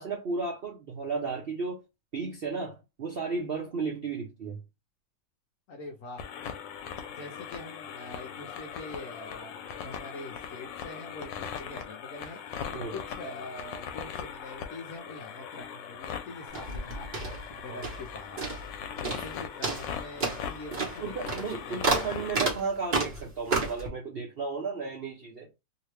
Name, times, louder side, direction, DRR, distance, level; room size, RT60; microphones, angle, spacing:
voice 1, 0.0-1.8 2.1-4.6 12.7-13.0 17.7-17.8 21.0-25.5, right 4 dB, 60° right, 0.6 m, -34 dB
voice 2, 5.7-6.3 7.1-12.4 12.9-18.5 18.9-22.0, left 2 dB, 65° left, 0.8 m, -44 dB
sound 1, 6.2-22.5, left 7 dB, 90° left, 1.3 m, -40 dB
sound 2, 16.5-18.1 18.4-18.8 19.0-19.3 19.6-23.9, right 3 dB, 35° right, 1.0 m, -31 dB
2.9 x 2.8 x 3.1 m
omnidirectional pair, 1.9 m